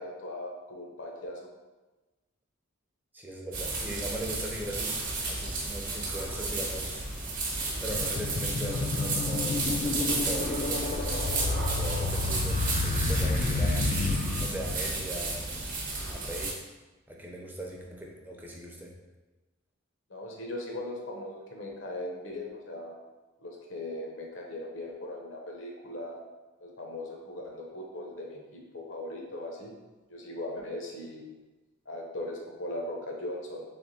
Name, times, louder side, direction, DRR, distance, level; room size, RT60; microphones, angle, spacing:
voice 1, 0.0-1.4 20.1-23.0 23.4-26.2 26.6-29.7 30.1-31.2 31.9-33.6, left 1 dB, 70° left, 0 dB, 0.9 m, -39 dB
voice 2, 3.1-7.0 7.8-13.9 14.4-15.6 16.1-16.6 17.1-18.9, right 1 dB, 10° right, -1 dB, 0.6 m, -39 dB
sound 1, 3.5-16.5, right 3 dB, 45° right, 0.9 m, -33 dB
sound 2, 6.9-7.0 7.5-15.1, left 3 dB, 35° left, 0.3 m, -30 dB
3.5 x 3.4 x 4.1 m, 1.2 s
head